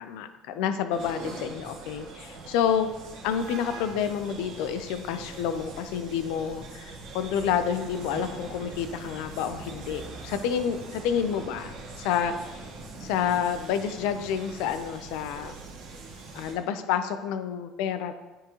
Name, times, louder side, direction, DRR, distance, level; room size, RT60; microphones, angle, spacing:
voice 1, 0.0-2.9 3.2-12.6 13.0-15.5 16.3-18.1, left 8 dB, 70° left, 10 dB, 0.4 m, -29 dB
sound 1, 0.9-16.5, right 3 dB, 60° right, 1.2 m, -42 dB
9.2 x 3.7 x 3.0 m, 1.1 s
cardioid pair, 180°, 0 cm